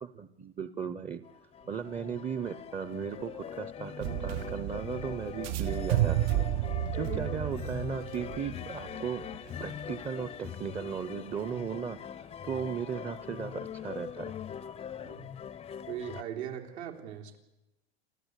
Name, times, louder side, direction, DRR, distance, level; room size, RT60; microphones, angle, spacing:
voice 1, 0.0-1.2 1.7-6.2 6.9-9.2 9.6-14.4, right 7 dB, 15° right, 12 dB, 0.8 m, -36 dB
sound 1, 1.2-16.2, left 8 dB, 20° left, 0.6 m, -42 dB
sound 2, 4.0-10.1, right 14 dB, 50° right, 0.7 m, -32 dB
voice 2, 15.0-15.3 15.9-17.4, right 9 dB, 75° right, 2 dB, 3.8 m, -40 dB
28.0 x 13.5 x 8.3 m, 0.97 s
hypercardioid pair, 115°, 33 cm